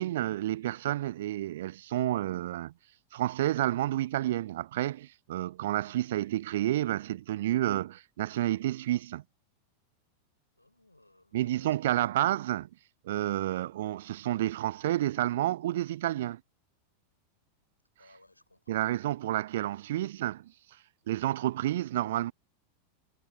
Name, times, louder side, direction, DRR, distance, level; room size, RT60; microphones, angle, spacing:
voice 1, 0.0-2.7 3.1-9.2 11.3-12.7 13.0-16.4 18.7-20.5 21.1-22.3, right 14 dB, 55° right, 0.8 m, -30 dB
voice 2, 10.6-12.2 18.0-19.0, left 1 dB, 85° left, 6.3 m, -58 dB
figure-of-eight pair, 90°, 0 cm